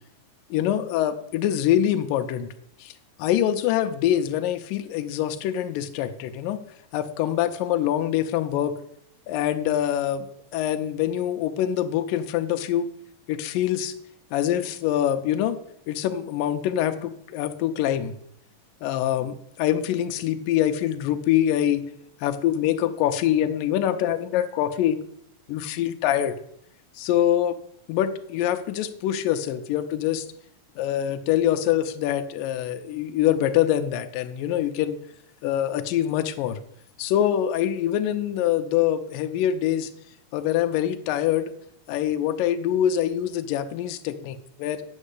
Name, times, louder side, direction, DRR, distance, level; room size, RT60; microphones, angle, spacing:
voice 1, 0.5-2.5 2.8-2.9 3.2-6.6 6.9-8.7 9.3-10.3 10.5-12.9 13.3-13.9 14.3-15.6 15.9-18.1 18.8-21.8 22.2-25.0 25.5-26.4 27.0-27.6 27.9-30.3 30.8-35.0 35.4-36.6 37.0-39.9 40.3-41.5 41.9-44.8, left 11 dB, 85° left, 7 dB, 2.4 m, -24 dB
8.7 x 6.3 x 8.3 m, 0.72 s
omnidirectional pair, 3.9 m